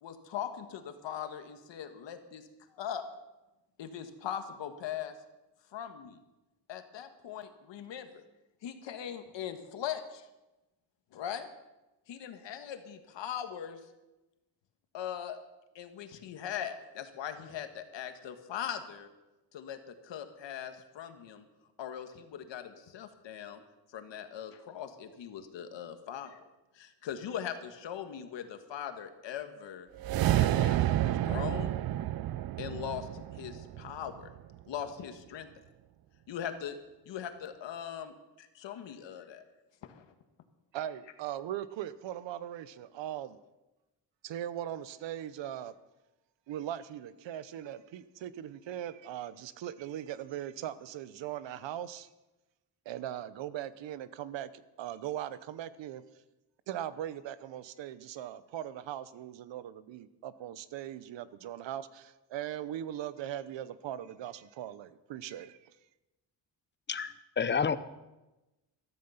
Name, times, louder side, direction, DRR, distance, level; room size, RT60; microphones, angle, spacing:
voice 1, 0.0-3.0 3.8-5.2 5.7-6.2 6.7-8.2 8.6-10.3 11.1-11.5 12.1-13.8 14.9-15.4 15.7-19.1 19.5-21.4 21.8-23.6 23.9-26.4 26.7-29.9 30.3-31.8 32.6-34.3 34.7-35.5 36.3-36.8 37.0-39.4 39.8-40.1, left 9 dB, 80° left, 8 dB, 1.6 m, -40 dB
sound 1, 30.0-34.4, right 13 dB, 55° right, 0.5 m, -30 dB
voice 2, 40.7-43.4 44.2-45.7 46.5-52.1 52.9-56.0 56.7-65.6, right 11 dB, 85° right, 16 dB, 0.9 m, -40 dB
voice 3, 66.9-67.8, left 6 dB, 25° left, 13 dB, 0.8 m, -30 dB
14.5 x 13.5 x 5.7 m, 1.0 s
cardioid pair, 120°, 43 cm